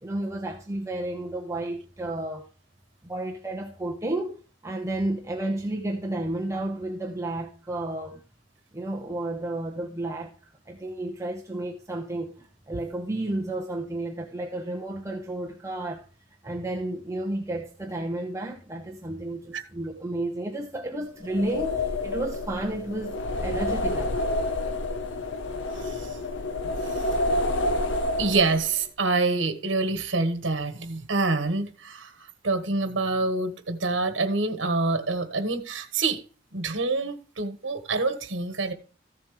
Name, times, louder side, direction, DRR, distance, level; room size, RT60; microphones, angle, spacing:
voice 1, 0.0-2.5 3.0-4.3 4.6-8.2 8.7-16.1 16.4-24.3, right 1 dB, 15° right, 1.0 m, -32 dB
sound 1, 21.2-28.8, left 2 dB, 85° left, 0.9 m, -29 dB
voice 2, 28.2-32.1 32.4-36.2 36.5-38.7, right 3 dB, 80° right, 1.3 m, -26 dB
14.5 x 7.3 x 3.2 m
head